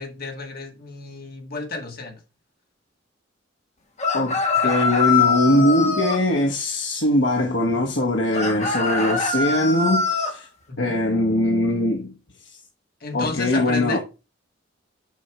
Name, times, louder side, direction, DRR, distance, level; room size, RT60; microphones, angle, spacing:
voice 1, 0.0-2.2 4.6-4.7 10.7-11.0 13.0-14.0, left 3 dB, 55° left, 2.1 m, -32 dB
sound 1, 4.0-6.2 8.3-10.3, left 4 dB, 40° left, 1.7 m, -23 dB
voice 2, 4.1-10.5 10.8-12.1 12.5-12.6 13.1-14.0, left 1 dB, 70° left, 1.2 m, -21 dB
7.2 x 5.5 x 4.8 m
head